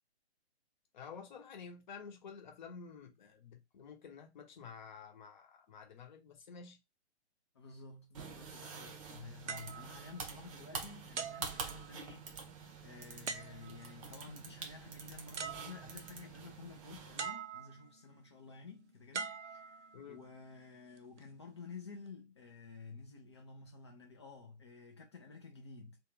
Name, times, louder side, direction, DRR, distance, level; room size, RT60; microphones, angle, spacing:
voice 1, 0.9-6.8 19.9-20.2, left 6 dB, 40° left, 0.9 m, -51 dB
voice 2, 7.5-12.3 12.8-26.0, left 4 dB, 25° left, 0.5 m, -52 dB
sound 1, 8.1-17.3, right 5 dB, 30° right, 0.7 m, -47 dB
sound 2, 9.5-10.7 11.2-12.3 13.3-14.0 15.0-15.1 15.4-16.2 17.2-18.0 19.1-20.3 21.0-21.2, right 5 dB, 80° right, 0.6 m, -44 dB
2.7 x 2.3 x 3.1 m
figure-of-eight pair, 135°, 35 cm